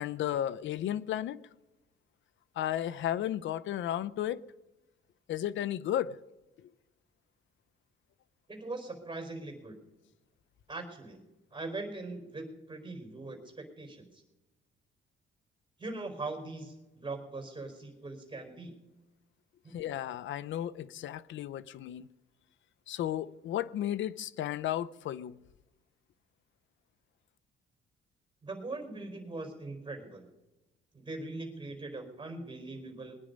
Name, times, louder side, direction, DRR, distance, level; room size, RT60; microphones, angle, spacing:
voice 1, 0.0-1.4 2.6-4.4 5.3-6.2 19.7-22.1 22.9-25.4, left 11 dB, 75° left, 0.7 m, -34 dB
voice 2, 8.5-9.8 10.7-11.2 11.5-14.2 15.8-18.8 19.6-19.7 28.4-30.3 30.9-33.2, right 2 dB, 20° right, 4.4 m, -41 dB
21.0 x 10.0 x 5.3 m
cardioid pair, 90°, 20 cm